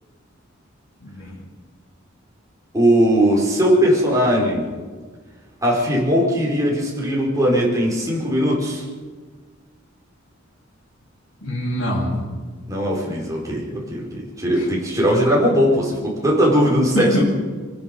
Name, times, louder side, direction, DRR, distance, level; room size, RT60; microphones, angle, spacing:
voice 1, 1.0-1.4 11.4-12.1 14.6-14.7 16.9-17.2, equal, 70° left, -3 dB, 7.8 m, -24 dB
voice 2, 2.7-4.7 5.6-8.8 12.7-17.2, equal, 15° right, -3 dB, 4.9 m, -19 dB
24.5 x 19.5 x 5.4 m, 1.4 s
head